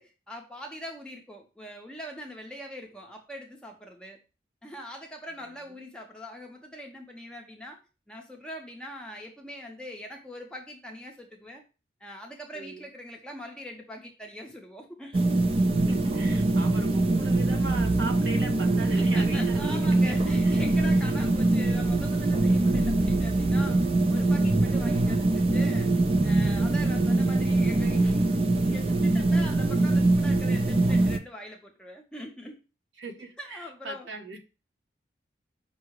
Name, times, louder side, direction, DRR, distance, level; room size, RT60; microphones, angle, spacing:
voice 1, 0.0-4.2 4.6-7.8 8.1-11.6 12.0-15.2 18.9-25.9 26.2-28.3 28.6-32.6 33.4-34.1, equal, 5° left, 1 dB, 0.6 m, -42 dB
sound 1, 15.1-31.2, right 2 dB, 30° right, 0.3 m, -23 dB
voice 2, 15.9-20.5 21.1-21.2 33.0-34.4, right 3 dB, 85° right, 3 dB, 1.0 m, -39 dB
5.5 x 2.0 x 4.6 m, 0.31 s
head